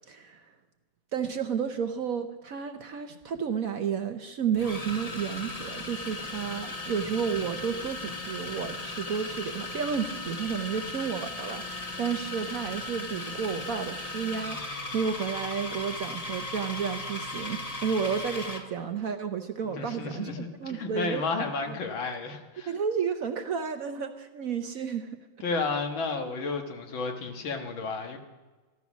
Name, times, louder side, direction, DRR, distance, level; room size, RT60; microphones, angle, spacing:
voice 1, 0.1-0.5 1.1-21.8 22.7-25.1, right 6 dB, 60° right, 8 dB, 1.0 m, -32 dB
sound 1, 3.2-3.4 4.5-18.7, left 2 dB, 25° left, 0.9 m, -37 dB
voice 2, 19.7-22.7 25.4-28.2, left 4 dB, 85° left, 4 dB, 2.3 m, -32 dB
14.0 x 13.5 x 6.1 m, 1.3 s
omnidirectional pair, 2.1 m